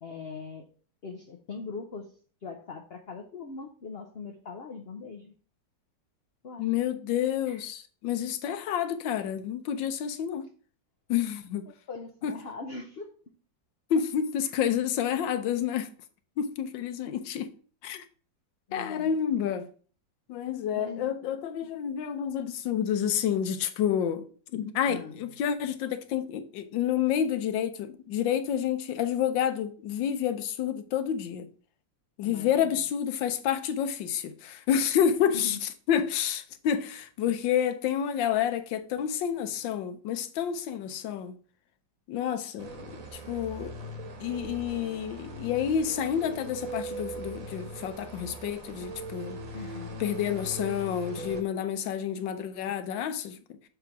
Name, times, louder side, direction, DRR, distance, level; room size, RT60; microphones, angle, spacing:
voice 1, 0.0-0.7 1.0-2.1 2.4-5.3 6.4-6.7 7.4-7.6 11.7-13.1 18.7-19.1 20.7-21.1 21.6-21.7 24.9-25.2 32.2-32.7 35.3-35.6 49.5-50.0, left 4 dB, 60° left, 0.6 m, -41 dB
voice 2, 6.6-10.5 11.1-11.7 12.2-12.3 13.9-15.9 16.4-17.5 17.8-18.0 18.7-19.7 20.3-24.2 24.5-31.5 32.2-41.4 42.1-43.7 44.2-49.4 50.0-53.6, left 9 dB, 85° left, 1.5 m, -29 dB
sound 1, 42.6-51.4, right 2 dB, 50° right, 1.4 m, -40 dB
6.8 x 3.3 x 5.9 m
omnidirectional pair, 2.0 m